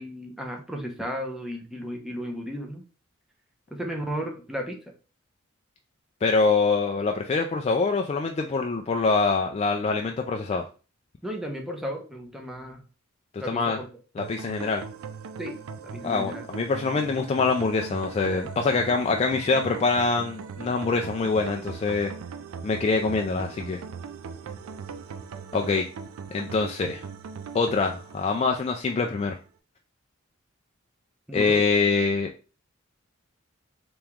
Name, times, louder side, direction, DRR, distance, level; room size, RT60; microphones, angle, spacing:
voice 1, 0.0-2.8 3.7-4.8 11.2-12.8 13.4-13.9 15.4-15.6 15.8-16.4 31.3-31.6, equal, ahead, 1 dB, 0.7 m, -34 dB
voice 2, 6.2-10.7 13.3-13.8 14.2-14.8 16.0-22.1 22.6-23.8 25.5-25.9 26.3-27.1 27.5-29.4 31.3-32.3, left 4 dB, 30° left, 3 dB, 0.3 m, -24 dB
sound 1, 14.2-29.2, right 5 dB, 80° right, 0.4 m, -40 dB
3.5 x 3.0 x 3.5 m, 0.35 s
head